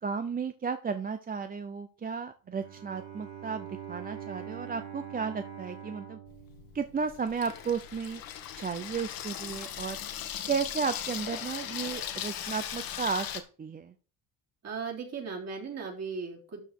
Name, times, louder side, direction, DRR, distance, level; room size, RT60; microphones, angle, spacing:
voice 1, 0.0-6.2 6.7-8.2 8.6-10.0 10.5-13.3 13.6-13.9, right 5 dB, 25° right, 9 dB, 0.6 m, -33 dB
Bowed string instrument, 2.5-7.5, right 8 dB, 85° right, 2.1 m, -44 dB
Water tap faucet / Sink (filling or washing), 6.3-13.4, left 10 dB, 70° left, 1.6 m, -38 dB
voice 2, 14.6-16.6, right 5 dB, 45° right, -1 dB, 3.7 m, -37 dB
12.5 x 5.1 x 4.6 m, 0.39 s
cardioid pair, 115°, 36 cm